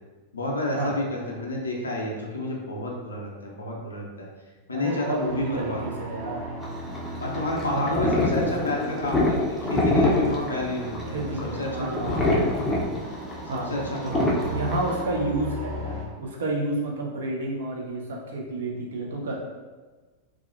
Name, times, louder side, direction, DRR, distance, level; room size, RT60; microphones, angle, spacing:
voice 1, 0.3-4.3 4.7-5.8 7.2-11.2 11.6-12.5 13.7-14.6, left 1 dB, 75° left, -2 dB, 0.4 m, -30 dB
voice 2, 4.7-6.5 7.6-8.4 11.1-12.2 13.5-13.8 14.0-19.4, right 2 dB, 65° right, -1 dB, 0.5 m, -30 dB
sound 1, 4.8-16.0, equal, 45° right, 1.0 m, -37 dB
sound 2, 6.6-15.0, left 2 dB, 10° left, 0.5 m, -26 dB
2.4 x 2.1 x 2.4 m, 1.3 s
figure-of-eight pair, 90°, 0 cm